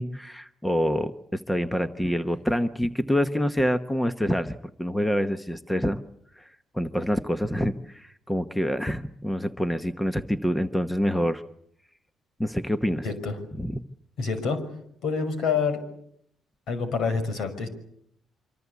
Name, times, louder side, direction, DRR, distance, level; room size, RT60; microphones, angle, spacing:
voice 1, 0.0-6.0 6.4-6.5 6.7-11.4 12.4-13.0 13.6-13.8, equal, 5° left, 10 dB, 1.0 m, -26 dB
voice 2, 13.0-13.4 14.2-14.6 15.0-15.8 16.7-17.7, left 5 dB, 70° left, 10 dB, 5.9 m, -27 dB
25.5 x 25.5 x 8.4 m, 0.71 s
cardioid pair, 130°, 0 cm